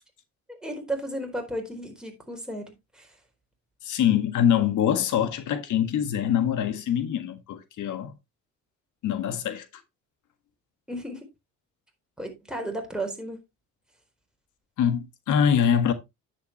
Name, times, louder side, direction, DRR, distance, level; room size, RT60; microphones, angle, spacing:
voice 1, 0.5-3.1 10.9-11.2 12.2-13.4, right 1 dB, 5° right, 4.2 m, -34 dB
voice 2, 3.8-8.1 9.0-9.6 14.8-15.9, left 9 dB, 75° left, 1.6 m, -24 dB
9.8 x 8.1 x 3.0 m
cardioid pair, 90°, 30 cm